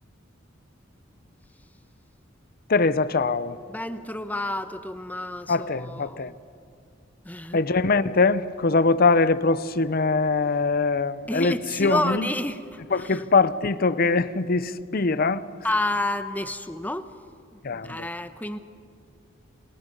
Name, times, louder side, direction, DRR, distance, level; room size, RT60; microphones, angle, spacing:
voice 1, 2.7-3.6 5.5-6.3 7.5-12.3 12.9-15.4 17.6-18.1, left 3 dB, 50° left, 0.7 m, -22 dB
voice 2, 3.7-6.3 7.2-7.6 11.3-13.2 15.6-17.1 17.6-18.6, left 1 dB, 10° left, 0.9 m, -30 dB
28.0 x 27.5 x 5.4 m
head